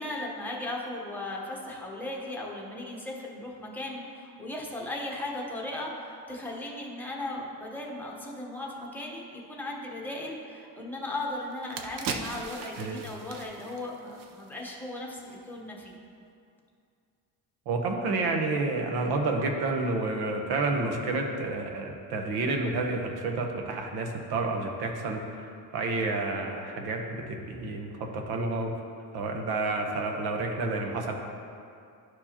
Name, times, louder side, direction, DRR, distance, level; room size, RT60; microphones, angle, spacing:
voice 1, 0.0-16.0, left 1 dB, 5° left, -3 dB, 1.0 m, -37 dB
sound 1, 11.0-11.1 11.5-14.8 15.1-15.3, right 5 dB, 60° right, 0.6 m, -39 dB
voice 2, 17.7-28.7 29.1-31.1, right 3 dB, 85° right, 3 dB, 1.0 m, -30 dB
11.5 x 4.6 x 2.9 m, 2.4 s
cardioid pair, 135°, 38 cm